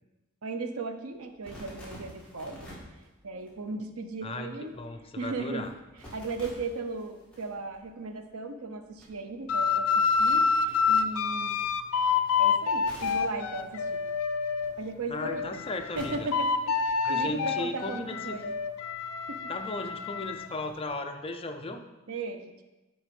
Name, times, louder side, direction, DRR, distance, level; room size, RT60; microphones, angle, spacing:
voice 1, 0.4-2.7 3.2-4.7 5.2-5.7 6.1-11.6 12.4-14.0 14.8-15.6 16.0-18.5 19.3-19.4 22.1-22.6, right 3 dB, 90° right, 7 dB, 0.7 m, -37 dB
sound 1, 1.1-17.3, equal, 5° left, 2.3 m, -51 dB
voice 2, 4.2-5.7 15.1-16.1 17.0-18.4 19.5-21.8, left 2 dB, 25° left, 6 dB, 0.6 m, -36 dB
sound 2, 9.5-14.7 15.2-20.5, left 5 dB, 85° left, 0.4 m, -28 dB
9.6 x 4.1 x 5.2 m, 1.1 s
head